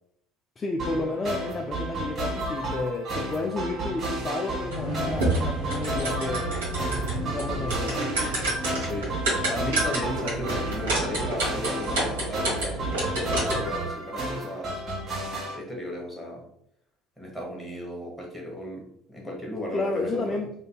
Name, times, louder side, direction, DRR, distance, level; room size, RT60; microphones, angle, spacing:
voice 1, 0.6-6.5 7.2-8.1 19.7-20.5, left 2 dB, 30° left, 2 dB, 0.4 m, -31 dB
sound 1, 0.8-15.6, right 1 dB, 35° right, 1.5 m, -32 dB
sound 2, 4.7-13.8, right 1 dB, 75° right, 1.3 m, -29 dB
voice 2, 8.8-14.8 15.5-16.5 17.2-20.4, left 1 dB, 5° left, -2 dB, 1.2 m, -35 dB
3.7 x 2.6 x 2.3 m, 0.74 s
figure-of-eight pair, 60°, 0 cm